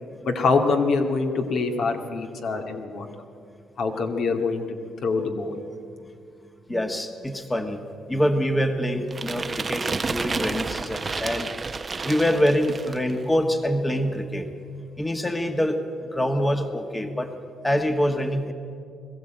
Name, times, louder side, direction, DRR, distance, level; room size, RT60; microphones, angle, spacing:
voice 1, 0.2-3.1 3.8-4.6 5.0-5.6, left 4 dB, 65° left, 3 dB, 2.2 m, -24 dB
voice 2, 6.7-7.8 8.1-11.5 12.0-14.5 15.0-15.8 16.1-17.3 17.6-18.5, equal, 15° left, 6 dB, 1.4 m, -25 dB
sound 1, 9.1-13.1, right 4 dB, 30° right, 0.9 m, -30 dB
21.5 x 14.0 x 9.0 m, 2.4 s
cardioid pair, 90°, 0 cm